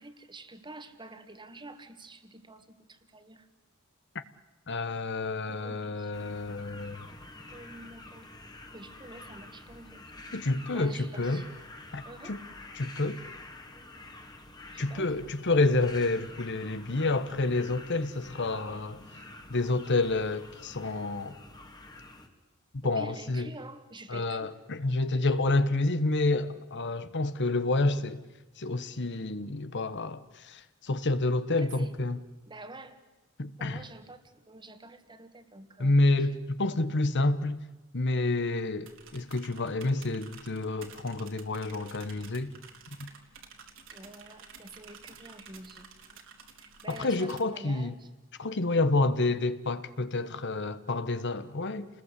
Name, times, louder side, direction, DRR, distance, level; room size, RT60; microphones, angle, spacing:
voice 1, 0.0-3.5 5.5-6.1 7.5-8.3 8.7-10.0 10.7-11.5 12.1-12.4 14.7-15.1 22.8-24.5 31.5-31.9 32.5-33.0 33.6-36.4 43.9-46.2 46.6-48.1 48.4-48.6, right 2 dB, 20° right, 2.0 m, -48 dB
voice 2, 4.7-7.1 10.3-11.4 11.9-12.0 12.3-12.4 12.7-13.2 14.8-19.0 19.5-21.4 22.7-23.5 24.1-28.2 28.6-32.2 33.4-33.8 35.8-37.6 37.9-42.5 43.0-43.1 46.9-47.9 48.4-51.9, left 2 dB, 55° left, 1.2 m, -29 dB
sound 1, 6.1-22.3, left 2 dB, 20° left, 2.2 m, -48 dB
sound 2, 38.9-47.4, right 6 dB, 65° right, 3.3 m, -51 dB
29.5 x 20.5 x 8.3 m
head